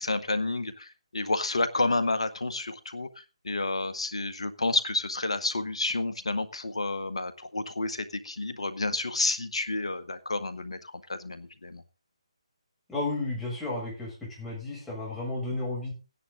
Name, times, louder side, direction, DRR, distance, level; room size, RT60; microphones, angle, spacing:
voice 1, 0.0-11.8, left 2 dB, 70° left, 10 dB, 1.6 m, -30 dB
voice 2, 12.9-15.9, left 2 dB, 5° left, -6 dB, 7.3 m, -33 dB
15.5 x 10.0 x 3.9 m, 0.31 s
figure-of-eight pair, 145°, 3 cm